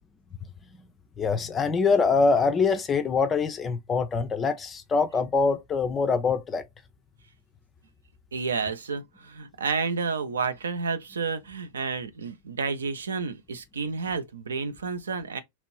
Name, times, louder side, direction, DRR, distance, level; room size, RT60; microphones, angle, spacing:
voice 1, 1.2-6.6, left 4 dB, 20° left, 0.4 m, -24 dB
voice 2, 8.3-15.4, right 5 dB, 70° right, 0.5 m, -30 dB
3.0 x 2.5 x 3.0 m
figure-of-eight pair, 90°, 0 cm